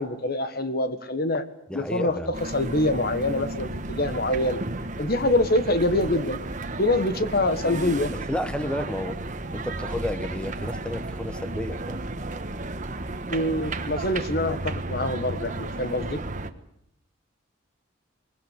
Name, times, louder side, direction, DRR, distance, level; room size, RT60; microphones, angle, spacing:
voice 1, 0.0-1.4 1.7-4.6 5.0-6.4 6.8-8.1 13.3-16.2, left 1 dB, 50° left, 11 dB, 1.6 m, -25 dB
voice 2, 1.7-2.3 7.6-9.2 9.5-12.0, left 1 dB, 5° left, 10 dB, 1.1 m, -32 dB
sound 1, 2.3-16.5, right 2 dB, 40° right, 1.4 m, -33 dB
23.0 x 20.5 x 8.5 m, 0.73 s
head